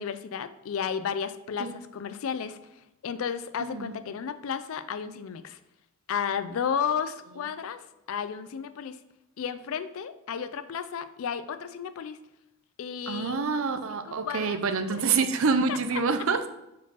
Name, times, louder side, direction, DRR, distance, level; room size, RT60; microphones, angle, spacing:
voice 1, 0.0-5.6 6.1-9.0 9.4-12.2 12.8-13.4 14.1-14.6 14.9-15.0 15.7-16.0, left 7 dB, 65° left, 12 dB, 0.4 m, -33 dB
voice 2, 3.6-3.9 13.1-16.4, right 4 dB, 65° right, 8 dB, 0.6 m, -27 dB
4.7 x 4.6 x 5.5 m, 0.92 s
head